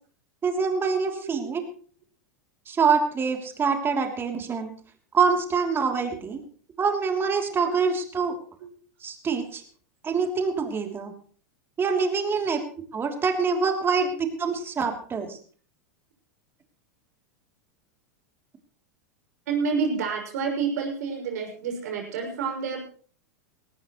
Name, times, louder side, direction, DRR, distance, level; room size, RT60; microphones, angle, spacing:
voice 1, 0.4-1.6 2.7-4.7 5.1-6.4 6.8-8.4 9.0-9.6 10.0-11.1 11.8-12.6 12.9-15.4, right 5 dB, 25° right, 4 dB, 3.1 m, -25 dB
voice 2, 1.0-1.5 7.5-7.8 8.2-8.3 8.6-8.7 10.8-10.9 12.3-12.5 13.8-14.0 19.5-22.9, right 5 dB, 70° right, 2 dB, 6.2 m, -30 dB
19.0 x 17.5 x 3.1 m, 0.43 s
hypercardioid pair, 95°, 9 cm